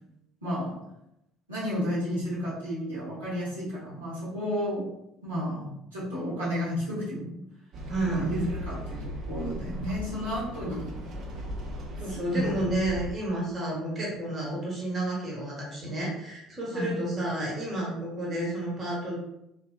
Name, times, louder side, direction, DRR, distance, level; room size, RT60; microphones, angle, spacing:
voice 1, 0.4-0.8 1.5-4.9 5.2-7.4 8.1-11.0 12.1-12.6 16.7-17.0, equal, 85° right, -11 dB, 1.0 m, -32 dB
sound 1, 7.7-13.1, equal, 50° right, 0.4 m, -37 dB
voice 2, 7.9-8.4 11.9-19.2, right 1 dB, 30° right, -5 dB, 1.0 m, -31 dB
2.5 x 2.2 x 2.3 m, 0.84 s
figure-of-eight pair, 60°, 0 cm